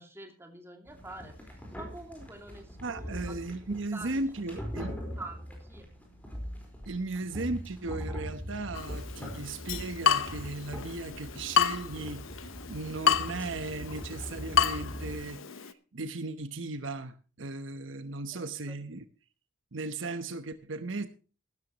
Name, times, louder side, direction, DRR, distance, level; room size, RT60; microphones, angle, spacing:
voice 1, 0.0-4.1 5.2-5.9 18.3-18.8, right 2 dB, 10° right, 4 dB, 2.5 m, -47 dB
sound 1, 0.9-15.2, equal, 10° left, 4.4 m, -42 dB
voice 2, 2.8-5.0 6.9-19.0 19.7-21.1, right 2 dB, 75° right, 11 dB, 1.0 m, -36 dB
Water tap faucet / Drip, 8.7-15.7, left 7 dB, 90° left, 0.9 m, -31 dB
16.0 x 13.0 x 3.0 m, 0.35 s
head